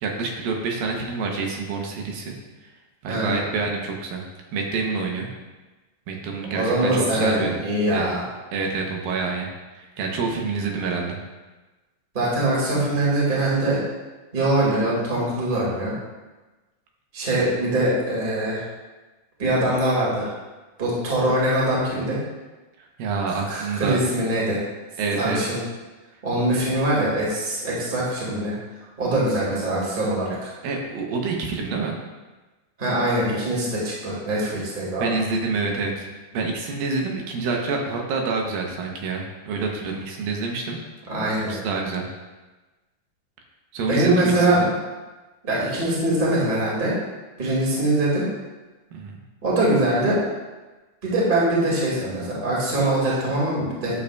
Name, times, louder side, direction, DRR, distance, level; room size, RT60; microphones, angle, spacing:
voice 1, 0.0-2.4 2.6-2.7 3.0-4.2 4.5-5.3 6.1-7.6 7.9-8.0 8.5-9.5 9.7-11.2 22.8-24.0 25.0-25.4 30.6-32.0 35.0-36.1 36.3-40.8 41.5-42.0 43.7-44.7 48.9-49.2, right 4 dB, 80° right, 1 dB, 2.7 m, -27 dB
voice 2, 3.1-3.4 6.5-8.2 12.1-13.8 14.3-15.9 17.1-18.6 19.4-20.3 20.8-22.2 23.3-24.6 25.1-25.6 26.2-28.5 29.0-30.5 32.8-35.1 41.1-41.6 43.9-44.6 45.4-46.9 47.4-48.2 49.4-50.2 51.0-53.9, right 1 dB, 20° right, -6 dB, 1.6 m, -23 dB
10.5 x 6.8 x 2.3 m, 1.2 s
omnidirectional pair, 4.1 m